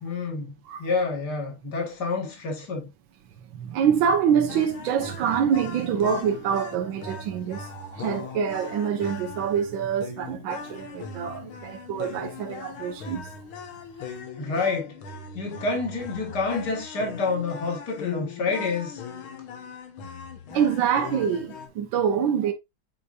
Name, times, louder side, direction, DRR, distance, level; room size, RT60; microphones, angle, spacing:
voice 1, 0.0-0.5 0.8-2.9 14.4-15.0 15.3-19.0, left 3 dB, 55° left, 2.4 m, -28 dB
voice 2, 3.5-13.3 20.5-22.5, right 8 dB, 70° right, 1.6 m, -25 dB
sound 1, 4.5-21.7, left 5 dB, 80° left, 2.1 m, -39 dB
8.1 x 5.0 x 2.5 m
omnidirectional pair, 2.3 m